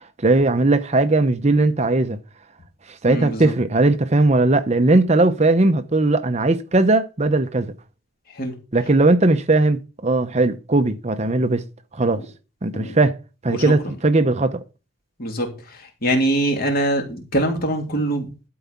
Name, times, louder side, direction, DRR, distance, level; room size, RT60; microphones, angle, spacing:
voice 1, 0.2-2.2 2.9-7.7 8.7-11.6 11.9-12.2 12.6-13.2 13.4-14.6, right 2 dB, 30° right, 0.7 m, -18 dB
voice 2, 3.1-3.5 8.3-8.5 12.7-13.0 13.5-13.7 15.2-18.3, right 1 dB, 45° left, 3.0 m, -23 dB
12.0 x 4.8 x 6.9 m
head